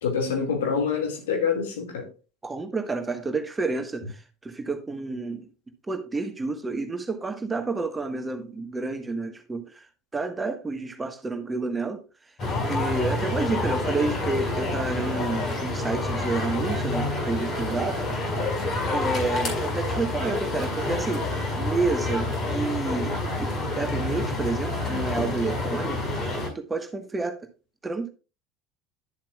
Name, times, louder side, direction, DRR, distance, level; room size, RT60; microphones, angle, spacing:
voice 1, 0.0-2.1, left 6 dB, 70° left, 2.1 m, -26 dB
voice 2, 2.4-5.5 5.9-9.9 10.1-12.0 12.7-18.2 18.9-21.3 21.6-27.4 27.8-28.1, right 3 dB, 20° right, 1.4 m, -30 dB
sound 1, 12.4-26.5, left 2 dB, 40° left, 4.7 m, -28 dB
11.5 x 7.4 x 2.3 m
figure-of-eight pair, 70°, 0 cm